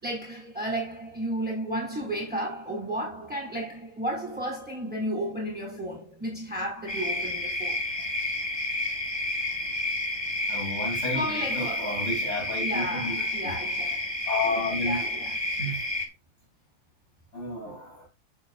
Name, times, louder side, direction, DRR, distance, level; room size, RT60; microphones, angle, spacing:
voice 1, 0.0-7.8 10.9-12.1 12.6-14.1 14.8-15.4, right 1 dB, 5° right, 5.4 m, -33 dB
sound 1, 6.9-16.1, left 2 dB, 15° left, 1.4 m, -30 dB
voice 2, 10.5-13.5 14.3-15.1 15.6-15.8 17.3-18.0, left 2 dB, 30° left, 3.5 m, -32 dB
10.5 x 7.8 x 2.5 m
omnidirectional pair, 2.3 m